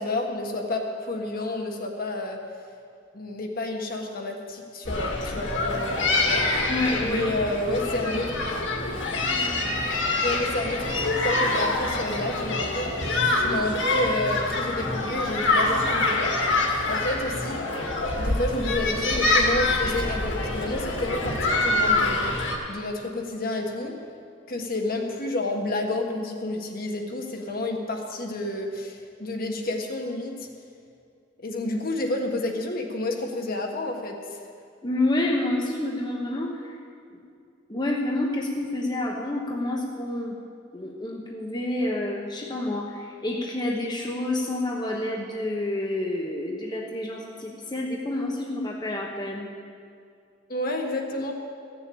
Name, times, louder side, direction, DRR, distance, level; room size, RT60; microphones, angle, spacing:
voice 1, 0.0-2.4 3.1-6.4 7.0-8.3 10.2-16.2 16.9-17.7 18.2-22.4 22.7-24.0 24.5-30.5 31.4-34.4 50.5-51.4, left 2 dB, 50° left, 2 dB, 1.5 m, -30 dB
sound 1, 4.8-22.6, left 2 dB, 85° left, 1.9 m, -25 dB
voice 2, 6.7-7.3 7.7-8.1 34.8-36.8 37.1-37.2 37.7-40.4 40.7-49.5, left 1 dB, 25° left, -1 dB, 1.0 m, -29 dB
14.5 x 7.0 x 8.6 m, 2.3 s
head